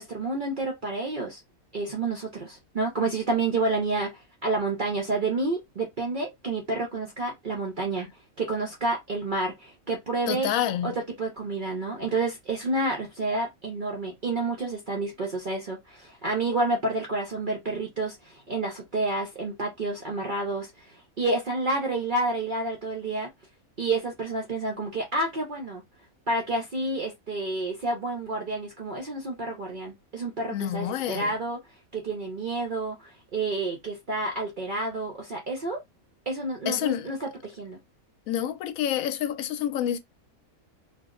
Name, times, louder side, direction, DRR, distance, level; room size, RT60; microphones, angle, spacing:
voice 1, 0.0-1.4 1.7-8.1 8.4-10.5 10.8-10.9 11.2-23.3 23.8-25.8 26.3-31.6 31.9-35.8 36.3-37.8, right 2 dB, 50° right, 0.7 m, -29 dB
voice 2, 10.3-10.9 30.5-31.3 36.7-37.1 38.3-40.0, left 10 dB, 75° left, 1.0 m, -28 dB
2.5 x 2.0 x 3.6 m
omnidirectional pair, 1.5 m